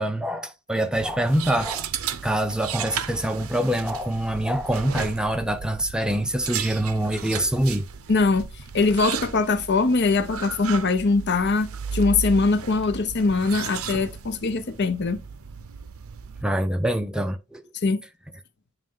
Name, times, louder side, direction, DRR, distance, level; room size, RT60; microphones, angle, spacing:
voice 1, 0.0-1.9 2.2-7.9 16.4-17.6, right 1 dB, 5° right, 0.4 m, -25 dB
sound 1, 0.9-16.4, right 7 dB, 80° right, 0.6 m, -35 dB
voice 2, 8.1-8.4 8.7-15.2 17.8-18.0, left 3 dB, 50° left, 0.7 m, -22 dB
8.9 x 3.2 x 3.7 m
head